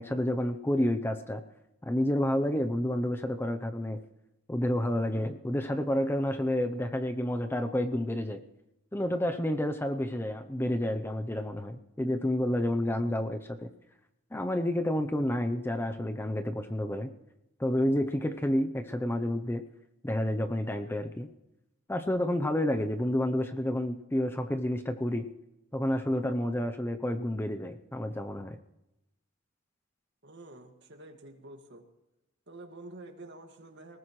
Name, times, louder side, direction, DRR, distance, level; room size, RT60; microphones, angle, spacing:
voice 1, 0.0-1.4 1.8-4.0 4.5-8.4 8.9-13.7 14.3-17.1 17.6-19.6 20.0-21.3 21.9-25.3 25.7-28.6, left 1 dB, 10° left, 7 dB, 0.7 m, -29 dB
voice 2, 30.2-31.8 32.5-34.0, right 2 dB, 60° right, 4 dB, 2.0 m, -48 dB
20.0 x 19.0 x 3.2 m, 0.91 s
head